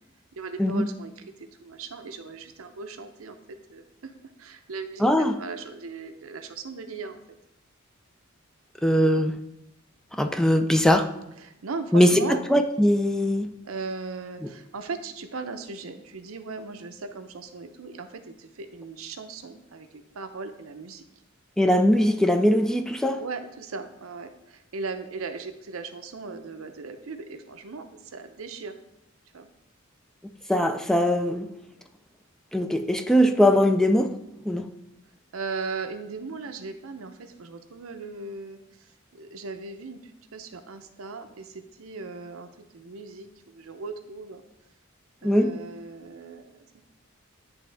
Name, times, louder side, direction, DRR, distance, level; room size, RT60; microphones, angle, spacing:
voice 1, 0.3-3.4 3.7-4.1 4.4-7.2 11.4-12.4 13.6-21.0 23.2-28.8 29.3-29.5 35.3-38.6 39.1-44.4 45.2-46.9, right 4 dB, 90° right, 8 dB, 0.7 m, -38 dB
voice 2, 5.0-5.4 8.8-9.4 10.2-11.1 11.9-13.5 21.6-23.2 30.5-31.5 32.5-34.1 34.5-34.7 45.2-45.6, equal, 5° left, 7 dB, 0.3 m, -21 dB
10.5 x 3.5 x 3.4 m, 0.86 s
head